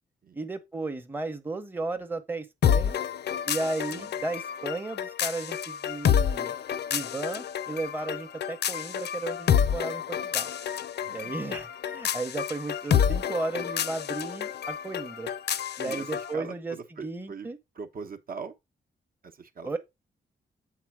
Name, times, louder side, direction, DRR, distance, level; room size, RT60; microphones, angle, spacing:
voice 1, 0.3-3.0 3.5-6.5 6.9-10.5 11.1-15.3 15.8-16.8 17.0-17.6 19.6-19.8, right 2 dB, 10° right, 0.8 m, -34 dB
sound 1, 2.6-16.3, left 8 dB, 60° left, 0.5 m, -29 dB
voice 2, 11.0-11.4 12.0-12.1 15.8-17.5 17.7-18.5 19.2-19.7, right 5 dB, 50° right, 0.9 m, -41 dB
7.6 x 4.1 x 4.6 m
wide cardioid pair, 125°, 19 cm